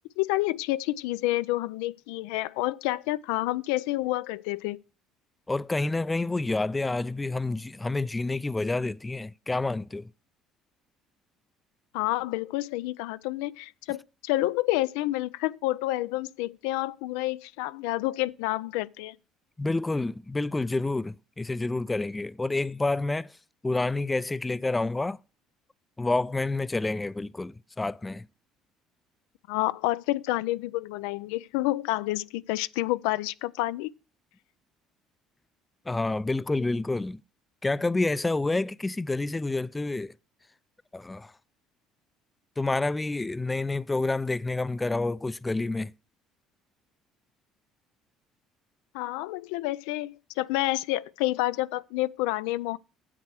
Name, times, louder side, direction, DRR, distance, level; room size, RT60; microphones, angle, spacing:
voice 1, 0.2-4.8 11.9-19.2 29.5-33.9 48.9-52.8, left 17 dB, 90° left, 0.4 m, -29 dB
voice 2, 5.5-10.1 19.6-23.3 23.6-25.2 26.0-28.3 35.9-37.2 37.6-40.1 40.9-41.3 42.6-45.9, left 2 dB, 15° left, 0.4 m, -28 dB
9.6 x 7.6 x 4.7 m
supercardioid pair, 95°, 0 cm